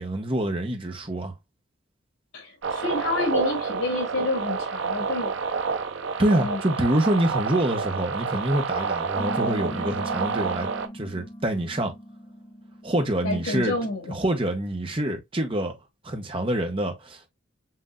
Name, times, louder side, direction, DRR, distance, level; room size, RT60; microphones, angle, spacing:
voice 1, 0.0-1.3 6.2-11.9 12.8-13.7 14.1-15.8 16.0-17.3, right 1 dB, 25° right, 0.9 m, -26 dB
voice 2, 2.3-5.6 6.3-6.6 13.2-14.1, left 2 dB, 80° left, 2.5 m, -29 dB
sound 1, 2.6-10.9, right 5 dB, 70° right, 0.6 m, -29 dB
sound 2, 9.2-14.1, equal, 30° left, 1.0 m, -39 dB
7.6 x 2.7 x 2.3 m
head